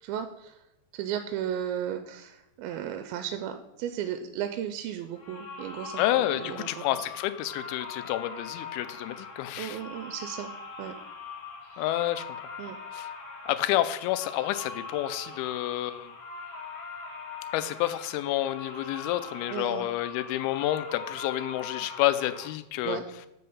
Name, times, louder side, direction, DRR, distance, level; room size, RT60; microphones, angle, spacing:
voice 1, 0.0-0.6 0.9-7.0 9.6-10.5 10.8-10.9 11.7-11.8 12.6-12.8 19.5-19.9 22.8-23.0, right 10 dB, 80° right, 7 dB, 2.3 m, -35 dB
sound 1, 5.1-22.5, left 4 dB, 65° left, 1.6 m, -42 dB
voice 2, 6.0-9.8 11.8-12.3 12.9-13.1 13.5-16.1 17.5-23.0, left 14 dB, 85° left, 13 dB, 2.4 m, -29 dB
7.6 x 5.6 x 5.4 m, 0.86 s
omnidirectional pair, 4.5 m